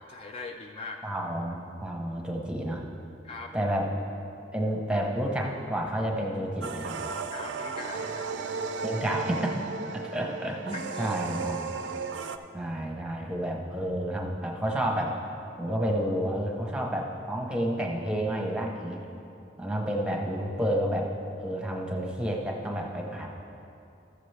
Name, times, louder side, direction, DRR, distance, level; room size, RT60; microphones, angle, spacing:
voice 1, 0.0-1.0 3.2-3.7 7.3-8.4 10.2-10.3 10.7-11.2, left 3 dB, 30° left, 3 dB, 0.3 m, -41 dB
voice 2, 1.0-2.8 3.5-3.9 4.5-7.0 8.8-9.6 9.9-11.7 12.5-15.1 15.6-19.0 19.6-21.1 21.4-23.3, right 1 dB, 5° right, 0 dB, 0.8 m, -30 dB
sound 1, 6.6-12.4, right 4 dB, 85° right, 0.4 m, -35 dB
14.0 x 6.6 x 3.3 m, 2.7 s
head